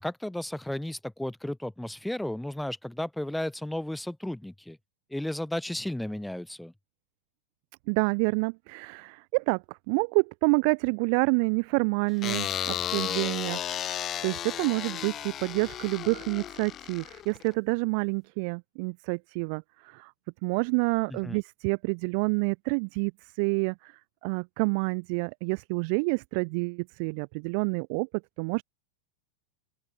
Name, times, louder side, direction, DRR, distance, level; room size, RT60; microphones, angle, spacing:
voice 1, 0.0-4.8 5.1-6.7 21.1-21.4, left 1 dB, 5° left, 2.1 m, -34 dB
voice 2, 7.9-13.9 14.2-20.1 20.4-23.1 23.4-28.1 28.4-28.6, right 35 dB, 45° right, 0.5 m, -28 dB
sound 1, 12.2-17.5, left 11 dB, 30° left, 1.0 m, -34 dB
open air
figure-of-eight pair, 90°, 0 cm